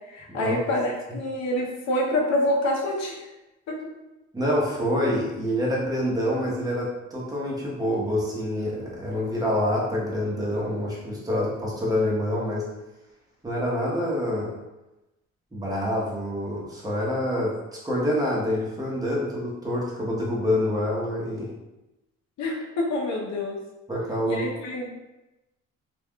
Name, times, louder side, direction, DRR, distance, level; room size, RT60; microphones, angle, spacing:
voice 1, 0.1-3.2 3.7-3.8 22.4-23.6 24.3-24.9, left 1 dB, 65° left, -2 dB, 0.8 m, -26 dB
voice 2, 4.3-12.6 13.4-14.5 15.5-21.5 23.9-24.4, left 1 dB, 10° right, -5 dB, 0.9 m, -26 dB
3.4 x 2.5 x 2.2 m, 1.0 s
cardioid pair, 90°, 30 cm